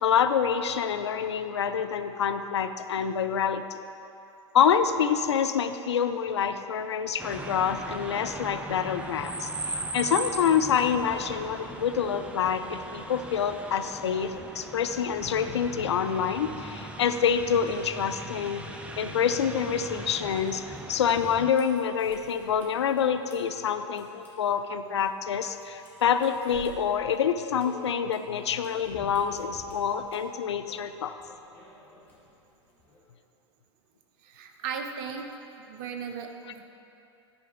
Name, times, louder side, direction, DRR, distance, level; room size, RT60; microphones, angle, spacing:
voice 1, 0.0-3.6 4.5-18.6 19.0-20.6 20.9-31.2, left 7 dB, 70° left, 10 dB, 0.4 m, -27 dB
sound 1, 7.2-21.5, right 2 dB, 10° right, 0.5 m, -39 dB
sound 2, 20.1-33.0, equal, 10° left, 2.0 m, -53 dB
voice 2, 34.2-35.3 35.6-36.6, right 6 dB, 50° right, 5 dB, 0.8 m, -36 dB
9.5 x 4.7 x 5.2 m, 2.8 s
figure-of-eight pair, 90°, 15 cm